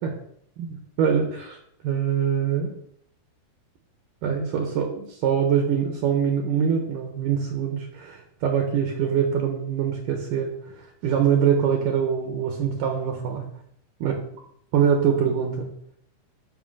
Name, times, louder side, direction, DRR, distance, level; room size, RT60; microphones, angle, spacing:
voice 1, 0.6-1.6 1.8-2.7 4.2-13.5 14.0-14.1 14.7-15.7, right 7 dB, 65° right, 3 dB, 2.6 m, -24 dB
10.5 x 7.4 x 5.5 m, 0.70 s
omnidirectional pair, 4.6 m